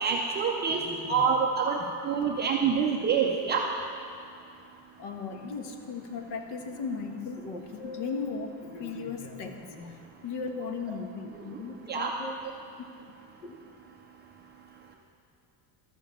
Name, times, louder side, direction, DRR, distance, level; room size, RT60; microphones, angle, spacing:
voice 1, 0.0-0.8 1.1-1.8 2.0-3.6 11.9-12.1, right 6 dB, 25° right, -1 dB, 0.3 m, -26 dB
voice 2, 0.7-1.3 1.8-1.9 2.2-2.3 2.6-2.8 5.0-12.3 13.4-13.6, left 4 dB, 65° left, 5 dB, 1.3 m, -37 dB
12.0 x 7.2 x 7.2 m, 2.5 s
cardioid pair, 170°, 50 cm